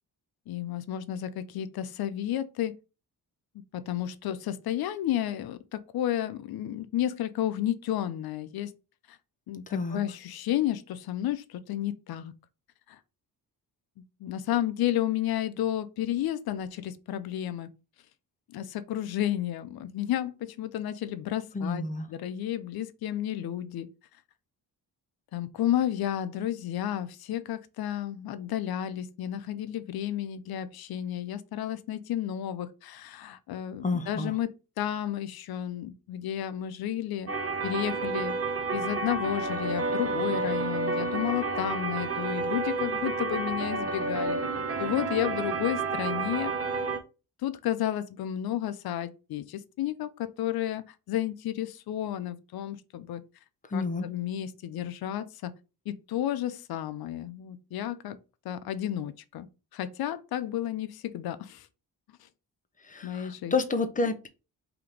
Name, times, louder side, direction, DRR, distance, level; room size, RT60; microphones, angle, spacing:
voice 1, 0.5-2.7 3.7-8.7 9.5-12.3 12.9-13.0 14.2-17.7 18.5-23.9 25.3-37.3 37.6-38.3 38.7-44.4 44.8-46.5 47.4-53.2 53.7-55.5 55.9-58.2 58.4-59.5 59.7-61.7 63.0-63.5, left 11 dB, 65° left, 0.6 m, -32 dB
voice 2, 9.7-10.0 21.5-22.1 33.8-34.3 53.7-54.1 62.8-64.3, left 3 dB, 20° left, 0.9 m, -29 dB
sound 1, 37.3-47.0, right 3 dB, 35° right, 0.9 m, -30 dB
3.6 x 2.9 x 4.8 m
cardioid pair, 75°, 40 cm